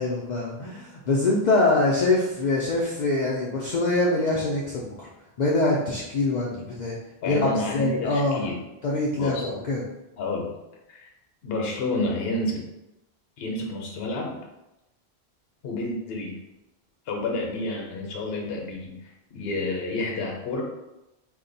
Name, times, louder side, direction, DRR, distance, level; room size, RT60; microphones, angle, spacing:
voice 1, 0.0-5.1 5.4-7.0 7.3-8.5 8.8-9.8, left 2 dB, 55° left, -4 dB, 0.5 m, -24 dB
voice 2, 7.2-8.6 9.1-9.5 10.2-10.6 10.9-11.1 11.4-12.7 13.4-14.4 15.6-16.4 17.1-20.6, left 2 dB, 70° left, 0 dB, 0.9 m, -30 dB
2.7 x 2.1 x 3.8 m, 0.92 s
omnidirectional pair, 1.1 m